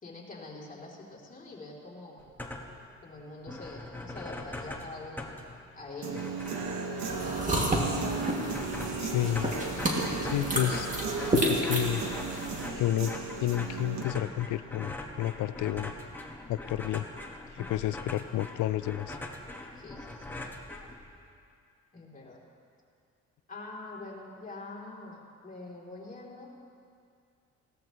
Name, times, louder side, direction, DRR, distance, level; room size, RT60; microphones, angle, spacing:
voice 1, 0.0-2.2 3.0-5.3 5.7-6.3 17.6-17.7 19.7-20.3 21.9-22.4 23.5-26.5, left 2 dB, 25° left, -4 dB, 3.2 m, -44 dB
sound 1, 2.2-2.9 3.2-3.3 3.5-21.3, left 2 dB, 5° left, 1.3 m, -42 dB
Human voice / Guitar, 6.0-14.0, right 4 dB, 65° right, 1.5 m, -35 dB
sound 2, 7.1-12.7, equal, 25° right, 2.3 m, -31 dB
voice 2, 9.0-9.5 10.2-10.9 11.2-12.0 12.8-13.1 13.4-15.9 16.5-17.1 17.5-19.2, left 14 dB, 80° left, 14 dB, 0.4 m, -30 dB
17.5 x 13.5 x 3.1 m, 2.3 s
cardioid pair, 90°, 30 cm